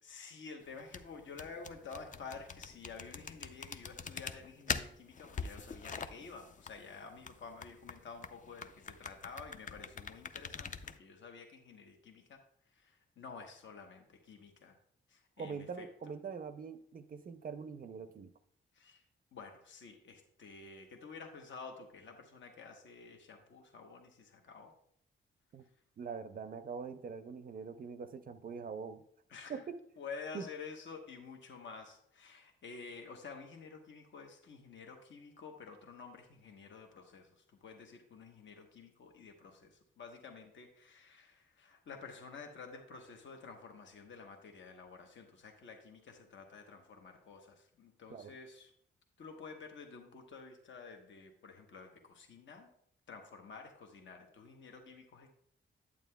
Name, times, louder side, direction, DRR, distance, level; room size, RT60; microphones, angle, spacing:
voice 1, 0.0-12.4 12.7-14.8 15.1-15.9 18.7-19.0 19.3-24.7 29.3-29.6 30.0-48.7 49.2-52.7 53.1-55.3, left 5 dB, 65° left, 4 dB, 0.9 m, -50 dB
sound 1, 0.7-11.0, left 5 dB, 40° left, 0.4 m, -44 dB
voice 2, 15.4-18.3 25.5-25.6 26.0-29.0 29.5-29.8 30.3-30.4 48.1-48.3, right 5 dB, 45° right, 11 dB, 0.4 m, -43 dB
9.2 x 8.5 x 2.2 m, 0.68 s
wide cardioid pair, 115°, 21 cm